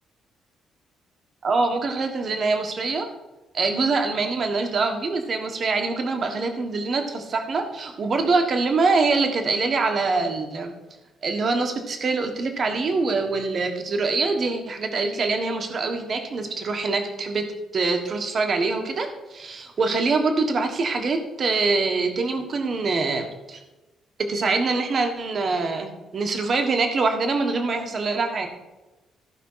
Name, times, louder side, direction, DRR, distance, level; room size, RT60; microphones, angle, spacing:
voice 1, 1.4-3.1 3.5-10.7 11.2-17.5 17.7-23.6 24.3-28.5, right 3 dB, 35° right, 5 dB, 1.5 m, -24 dB
14.5 x 5.5 x 5.7 m, 1.1 s
cardioid pair, 160°, 0 cm